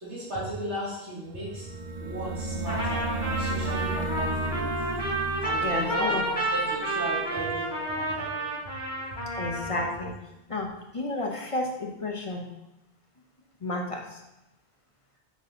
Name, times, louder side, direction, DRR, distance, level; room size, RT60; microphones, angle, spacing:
voice 1, 0.0-1.7 2.0-4.7 5.4-9.4, right 1 dB, 80° right, -10 dB, 2.7 m, -36 dB
sound 1, 1.3-8.1, right 2 dB, 45° right, 0.7 m, -34 dB
Trumpet, 2.7-10.0, right 1 dB, 20° right, 2.1 m, -30 dB
voice 2, 5.6-6.2 9.4-10.1 10.5-12.5 13.6-14.2, left 2 dB, 30° left, 1 dB, 0.8 m, -31 dB
7.3 x 6.1 x 2.7 m, 0.93 s
omnidirectional pair, 1.2 m